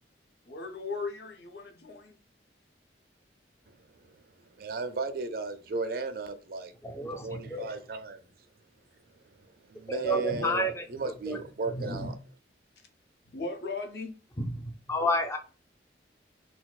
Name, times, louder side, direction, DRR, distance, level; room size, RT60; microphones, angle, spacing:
voice 1, 0.5-2.2 10.3-10.5 13.3-14.1, left 3 dB, 65° left, 0.6 m, -37 dB
voice 2, 4.6-6.7 7.2-8.2 9.7-10.6 10.9-12.2, right 3 dB, 55° right, 0.4 m, -35 dB
voice 3, 6.8-7.7 9.9-11.4 11.7-12.1 14.4-15.4, equal, 15° left, 0.4 m, -31 dB
4.0 x 2.3 x 2.3 m
head